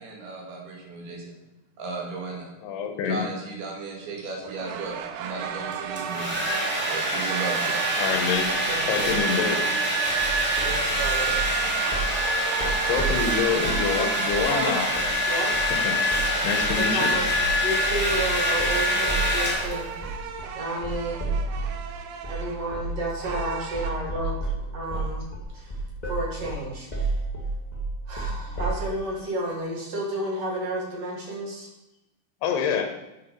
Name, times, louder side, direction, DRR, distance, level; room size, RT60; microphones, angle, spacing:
voice 1, 0.0-1.3 1.8-2.5 3.0-6.3 6.9-7.8, right 3 dB, 75° right, -1 dB, 4.0 m, -35 dB
voice 2, 2.6-3.2 6.2-6.3 8.0-8.5 8.9-9.7 12.9-14.9 15.8-16.0 16.4-17.1 32.4-33.0, left 6 dB, 85° left, 5 dB, 3.2 m, -26 dB
sound 1, 4.4-23.9, right 8 dB, 90° right, 2.8 m, -36 dB
Domestic sounds home sounds, 5.7-20.0, equal, 5° right, 2.1 m, -25 dB
voice 3, 8.7-9.2 10.6-11.3 13.5-13.7 14.3-14.7 15.3-15.7 16.8-17.3 17.6-19.9 20.5-21.2 22.3-24.3 24.7-25.2 25.5-25.8 26.0-27.1 28.1-31.7, right 1 dB, 45° right, -2 dB, 2.7 m, -31 dB
sound 2, 10.2-11.5 11.9-12.2 12.5-13.9 14.3-14.6 14.9-15.1 15.5-15.8 16.1-16.4 16.6-21.8 22.2-22.4 22.7-23.0 23.3-23.5 23.7-28.9, right 2 dB, 50° left, 0.5 m, -31 dB
10.0 x 6.5 x 5.2 m, 0.93 s
omnidirectional pair, 4.6 m